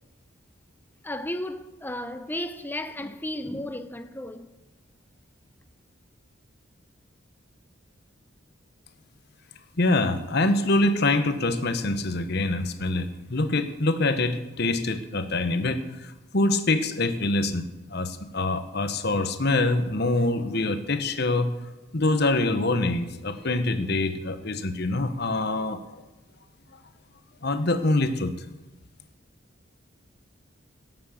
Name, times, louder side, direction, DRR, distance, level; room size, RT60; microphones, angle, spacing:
voice 1, 1.0-4.5, left 1 dB, 10° left, 0.7 m, -34 dB
voice 2, 9.8-21.5 21.9-25.8 27.4-28.3, left 2 dB, 55° left, 1.2 m, -25 dB
17.5 x 7.6 x 7.2 m
head